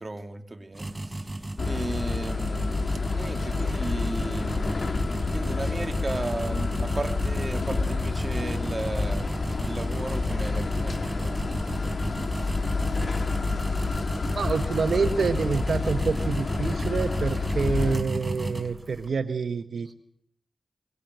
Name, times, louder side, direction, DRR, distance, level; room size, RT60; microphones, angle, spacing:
voice 1, 0.0-1.4 1.6-11.5 12.4-12.6 13.8-13.9, right 2 dB, 45° right, 6 dB, 2.8 m, -36 dB
sound 1, 0.7-19.1, right 1 dB, 20° right, 4.7 m, -34 dB
sound 2, 1.6-18.0, left 4 dB, 65° left, 1.8 m, -29 dB
voice 2, 14.3-19.9, right 5 dB, 85° right, 8 dB, 1.0 m, -27 dB
24.0 x 21.5 x 7.8 m, 0.71 s
cardioid pair, 50°, 0 cm